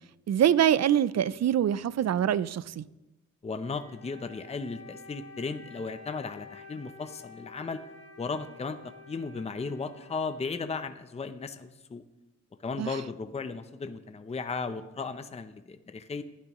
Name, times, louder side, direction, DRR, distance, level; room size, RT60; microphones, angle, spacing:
voice 1, 0.3-2.8 12.8-12.9, right 10 dB, 60° right, 0.4 m, -24 dB
voice 2, 3.4-7.8 8.2-8.8 9.1-12.0 12.6-16.2, left 4 dB, 20° left, 0.6 m, -35 dB
Wind instrument woodwind instrument, 3.6-11.1, left 3 dB, 65° left, 5.0 m, -50 dB
19.5 x 12.0 x 3.0 m
wide cardioid pair, 150°, 30 cm